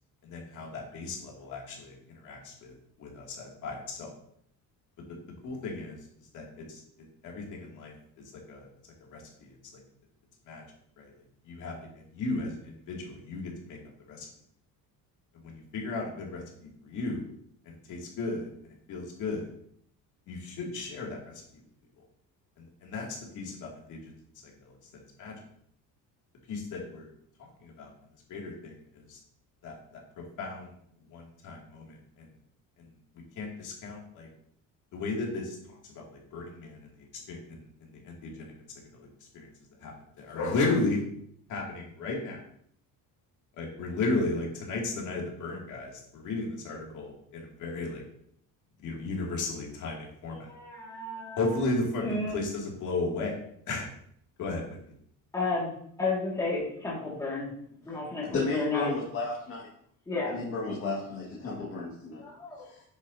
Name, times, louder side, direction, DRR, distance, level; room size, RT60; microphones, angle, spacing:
voice 1, 0.2-4.1 5.1-5.2 5.4-6.0 6.3-6.8 7.2-7.9 8.3-8.7 9.1-9.8 10.5-10.6 11.0-11.1 11.4-11.8 12.1-13.8 14.1-14.3 15.3-16.4 16.8-17.2 17.6-19.5 20.3-21.4 22.6-24.1 24.4-24.8 25.2-25.3 26.5-27.1 27.4-27.9 28.3-29.2 29.6-30.8 31.1-32.3 32.8-32.9 33.1-34.3 34.9-38.5 38.9-39.1 39.3-39.5 39.8-41.0 41.5-42.4 43.6-48.0 48.8-50.5 51.4-53.3 53.7-53.9 54.4-54.8, left 3 dB, 60° left, -2 dB, 2.5 m, -35 dB
voice 2, 50.3-51.6 52.0-52.4 55.3-55.7 56.0-57.5 57.9-58.9 60.1-60.4 62.2-62.7, left 3 dB, 10° left, -5 dB, 2.0 m, -32 dB
voice 3, 58.3-59.6 60.3-62.2 62.6-62.8, left 3 dB, 40° left, -4 dB, 1.9 m, -33 dB
9.9 x 7.3 x 2.8 m, 0.67 s
cardioid pair, 175°, 35 cm